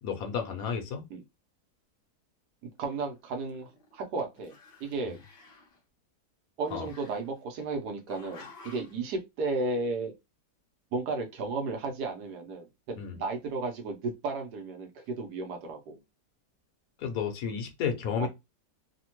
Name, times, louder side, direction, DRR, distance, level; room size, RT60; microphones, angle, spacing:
voice 1, 0.0-1.0 6.7-6.9 13.0-13.2 17.0-18.3, left 7 dB, 70° left, 1.1 m, -32 dB
voice 2, 2.8-5.2 6.6-10.1 10.9-16.0 18.2-18.3, right 3 dB, 80° right, 1.3 m, -34 dB
Growling, 2.9-4.1 4.4-5.8 6.7-7.7 8.1-9.0, left 4 dB, 55° left, 0.7 m, -53 dB
3.3 x 2.1 x 2.9 m
omnidirectional pair, 1.7 m